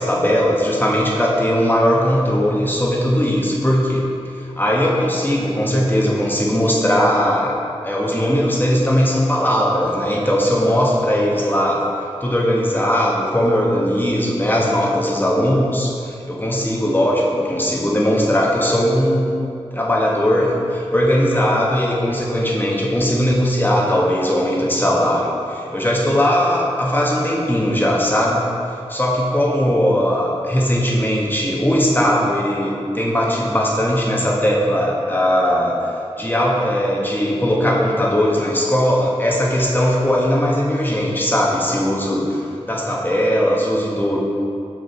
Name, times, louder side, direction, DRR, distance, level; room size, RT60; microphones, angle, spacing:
voice 1, 0.0-4.0 4.4-7.5 7.8-11.8 12.2-19.4 19.7-28.4 28.7-44.2, equal, 15° left, -4 dB, 1.3 m, -19 dB
6.1 x 5.5 x 4.5 m, 2.5 s
cardioid pair, 55°, 11 cm